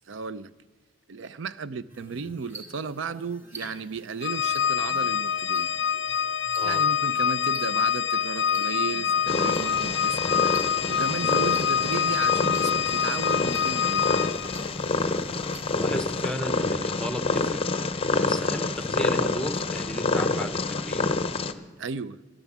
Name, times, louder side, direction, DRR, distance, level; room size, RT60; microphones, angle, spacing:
voice 1, 0.1-0.5 1.1-5.7 6.6-10.2 10.9-14.2 21.8-22.2, right 5 dB, 80° right, 0.5 m, -34 dB
sound 1, 1.9-16.2, right 2 dB, 15° right, 2.2 m, -48 dB
Organ, 4.2-14.6, left 8 dB, 70° left, 0.5 m, -26 dB
voice 2, 6.6-6.9 15.7-17.6 18.2-21.1, left 1 dB, 5° left, 0.9 m, -34 dB
Purr, 9.3-21.5, left 3 dB, 30° left, 0.7 m, -27 dB
14.0 x 10.0 x 7.2 m
head